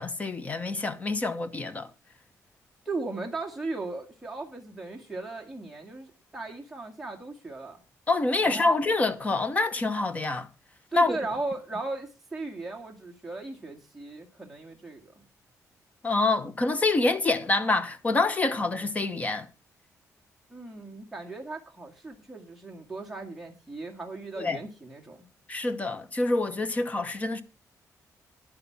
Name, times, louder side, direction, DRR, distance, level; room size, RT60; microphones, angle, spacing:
voice 1, 0.0-1.9 8.1-10.5 10.9-11.2 16.0-19.5 24.4-24.6 25.5-27.4, left 3 dB, 25° left, 1.0 m, -26 dB
voice 2, 2.9-7.8 8.4-8.7 10.9-15.1 20.5-25.3, right 3 dB, 5° right, 2.1 m, -37 dB
11.0 x 9.6 x 5.9 m
wide cardioid pair, 160°, 6 cm